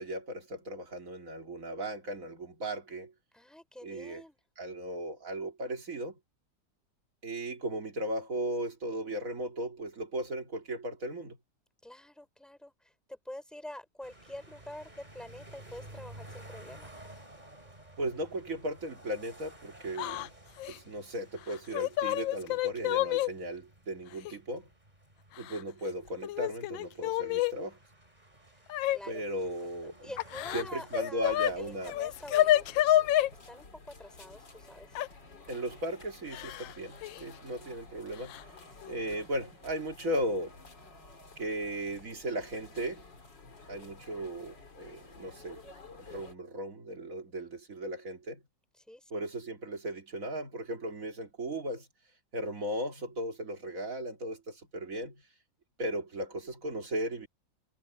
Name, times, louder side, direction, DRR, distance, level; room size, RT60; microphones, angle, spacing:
voice 1, 0.0-3.1 3.8-4.2 4.6-6.2 7.2-11.4 18.0-20.3 20.7-24.7 25.4-27.8 29.1-30.1 30.5-31.9 35.5-38.4 38.9-40.5 41.4-43.0 43.7-45.6 46.0-48.4 49.1-51.9 52.3-55.2 55.8-57.3, right 1 dB, 45° right, 3.2 m, -36 dB
voice 2, 3.3-4.4 11.8-16.9 28.5-28.6 28.9-29.2 30.0-32.7 32.9-35.0 48.8-49.1, left 1 dB, ahead, 4.9 m, -47 dB
sound 1, 14.0-33.7, right 1 dB, 20° right, 4.2 m, -54 dB
Yell / Crying sobbing, 20.0-20.3 20.6-20.8 21.5-23.3 24.2-24.3 25.4-25.9 26.2-27.5 28.7-29.0 30.2-31.5 31.8-33.3 34.9-35.1 36.3-36.7 37.0-37.2 38.3-38.4 38.8-39.1, left 13 dB, 90° left, 1.4 m, -28 dB
sound 2, 31.2-46.3, left 3 dB, 70° left, 4.3 m, -52 dB
omnidirectional pair, 2.0 m